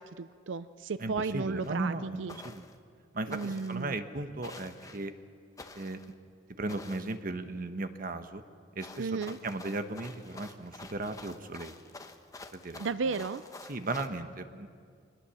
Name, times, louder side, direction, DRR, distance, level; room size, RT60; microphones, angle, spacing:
voice 1, 0.0-2.4 3.3-4.0 9.0-9.4 12.8-13.4, right 4 dB, 85° right, 14 dB, 0.5 m, -34 dB
voice 2, 1.0-2.6 3.1-5.1 5.7-6.0 6.6-8.4 8.7-11.7 12.5-12.8 13.7-14.7, right 2 dB, 50° right, 8 dB, 1.2 m, -36 dB
sound 1, 1.6-1.8 2.3-2.8 3.3-3.8 4.4-5.0 5.6-6.1 6.7-7.2 8.8-14.1, left 3 dB, 20° left, 1.0 m, -49 dB
24.0 x 20.0 x 7.1 m, 2.2 s
head